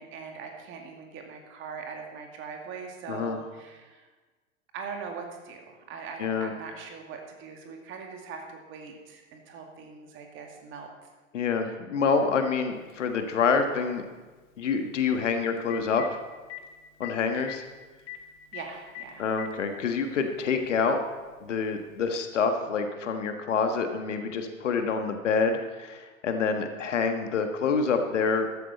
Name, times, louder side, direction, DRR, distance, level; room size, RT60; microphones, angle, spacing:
voice 1, 0.0-4.1 4.7-10.9 18.5-19.3, right 5 dB, 30° right, 2 dB, 2.2 m, -41 dB
voice 2, 6.2-6.5 11.3-14.0 14.6-16.2 17.0-17.6 19.2-21.0 21.4-28.5, left 5 dB, 60° left, 6 dB, 1.5 m, -27 dB
Telephone, 12.9-13.0 15.1-15.2 15.6-16.1 16.5-16.6 17.0-17.1 17.4-17.6 18.1-18.2 18.5-18.6 18.9-19.5 20.5-20.6 22.1-22.2, left 16 dB, 30° left, 1.6 m, -39 dB
14.0 x 12.5 x 4.1 m, 1.3 s
figure-of-eight pair, 100°, 41 cm